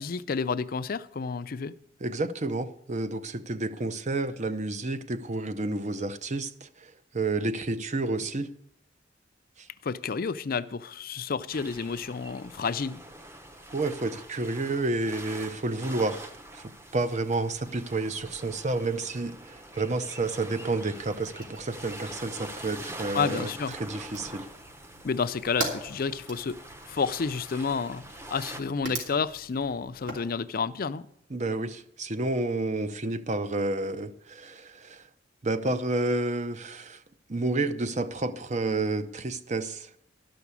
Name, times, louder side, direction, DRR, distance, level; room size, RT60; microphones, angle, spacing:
voice 1, 0.0-1.7 9.8-13.0 23.1-23.7 25.0-26.6 26.9-28.0 28.3-31.1, left 5 dB, 50° left, 0.5 m, -30 dB
voice 2, 2.0-8.5 9.6-9.7 13.7-24.5 31.3-35.1 35.4-37.0 37.3-39.9, right 2 dB, 40° right, 0.7 m, -30 dB
sound 1, 11.5-28.6, right 1 dB, 15° right, 0.9 m, -44 dB
Fire, 20.9-30.3, right 2 dB, 65° right, 3.0 m, -42 dB
12.5 x 6.1 x 8.3 m
head